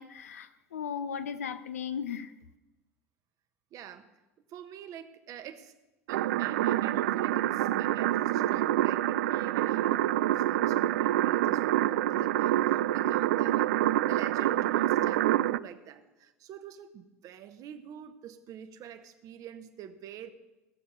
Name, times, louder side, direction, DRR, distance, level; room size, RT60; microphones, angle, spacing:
voice 1, 0.0-2.3, left 7 dB, 80° left, 12 dB, 0.7 m, -36 dB
voice 2, 3.7-4.1 4.5-5.7 6.1-13.7 14.1-20.3, right 9 dB, 50° right, 10 dB, 1.2 m, -46 dB
sound 1, 6.1-15.6, right 14 dB, 70° right, 0.3 m, -27 dB
18.0 x 6.9 x 6.9 m, 1.0 s
hypercardioid pair, 75°, 8 cm